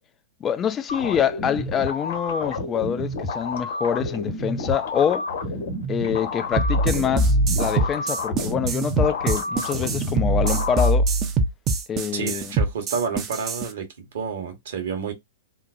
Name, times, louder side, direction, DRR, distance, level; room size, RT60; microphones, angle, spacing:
voice 1, 0.4-5.3 5.9-11.1 11.9-12.5, left 8 dB, 20° left, 0.3 m, -25 dB
sound 1, 0.9-10.9, left 2 dB, 65° left, 1.3 m, -30 dB
sound 2, 6.6-13.7, right 2 dB, 25° right, 0.5 m, -22 dB
voice 2, 12.1-15.1, right 6 dB, 60° right, 1.0 m, -29 dB
3.1 x 2.0 x 2.4 m
figure-of-eight pair, 110°, 0 cm